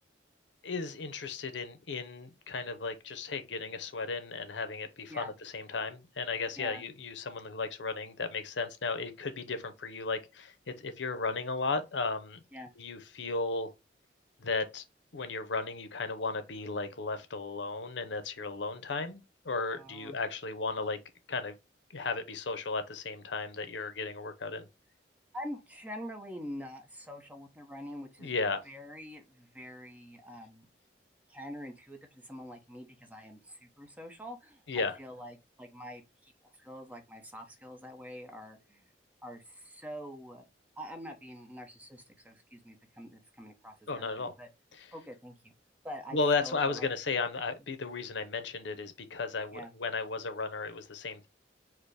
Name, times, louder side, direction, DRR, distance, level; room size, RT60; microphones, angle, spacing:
voice 1, 0.6-12.4 12.8-13.7 14.4-14.8 15.1-21.0 21.3-21.5 21.9-24.7 28.2-28.6 34.7-35.0 43.9-44.3 44.8-44.9 46.1-51.3, left 4 dB, 75° left, 0.7 m, -35 dB
voice 2, 19.7-20.2 25.3-28.4 28.6-30.7 31.3-38.9 39.2-40.4 40.8-44.5 44.9-45.5 45.8-46.9 47.6-47.7 49.5-49.7, equal, 10° right, 0.7 m, -45 dB
4.8 x 2.1 x 4.7 m
head